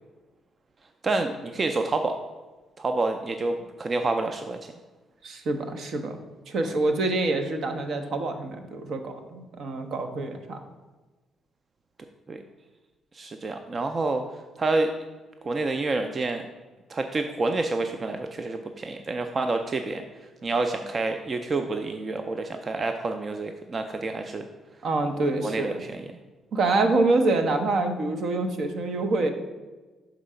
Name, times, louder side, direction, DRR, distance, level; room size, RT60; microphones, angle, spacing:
voice 1, 1.0-2.2 2.8-4.6 6.6-6.7 12.3-12.4 13.1-14.2 14.6-14.9 15.4-16.4 16.9-20.0 20.4-24.5 25.4-26.0, right 3 dB, 35° right, 6 dB, 0.4 m, -28 dB
voice 2, 5.2-6.2 6.5-10.6 24.8-25.8 26.5-29.3, right 2 dB, 65° right, 6 dB, 0.8 m, -26 dB
6.0 x 3.9 x 5.5 m, 1.2 s
cardioid pair, 90°, 0 cm